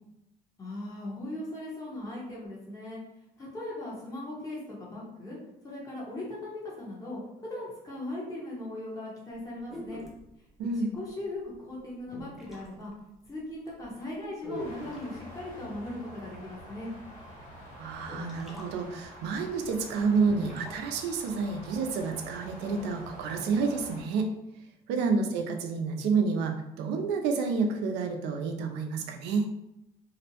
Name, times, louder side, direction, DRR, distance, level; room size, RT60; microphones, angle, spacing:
voice 1, 0.6-3.0 3.4-5.4 5.6-10.0 10.9-12.9 13.2-16.9 25.0-25.2, left 1 dB, 20° left, -5 dB, 0.9 m, -39 dB
sound 1, 9.7-10.3 11.5-11.6 12.1-12.7 13.3-13.4 13.7-13.8 14.4-15.2 16.6-16.7 17.3-17.4 18.0-18.7 19.0-19.1 19.3-19.4 20.2-20.8, left 1 dB, ahead, 0.5 m, -41 dB
voice 2, 10.6-10.9 17.7-24.3 24.9-29.5, right 4 dB, 85° right, 4 dB, 0.4 m, -29 dB
sound 2, 14.6-24.0, equal, 45° left, 1.3 m, -47 dB
2.5 x 2.1 x 2.8 m, 0.88 s
cardioid pair, 110°, 17 cm